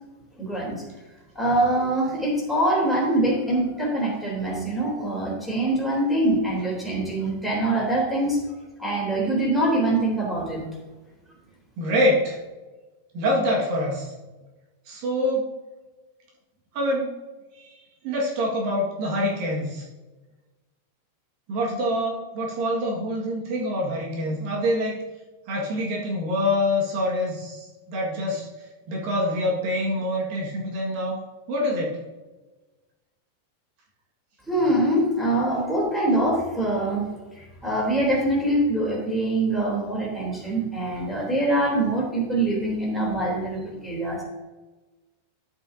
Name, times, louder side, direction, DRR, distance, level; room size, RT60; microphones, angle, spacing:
voice 1, 0.4-0.8 1.3-8.4 8.8-10.6 34.5-44.2, right 1 dB, ahead, -5 dB, 2.7 m, -24 dB
voice 2, 11.8-12.4 13.1-14.1 14.9-15.5 16.7-17.1 17.6-17.7 18.0-19.9 21.5-25.0 25.5-28.5 28.9-31.2 31.5-32.0, left 1 dB, 90° right, -3 dB, 3.6 m, -25 dB
12.0 x 7.8 x 2.7 m, 1.2 s
omnidirectional pair, 4.0 m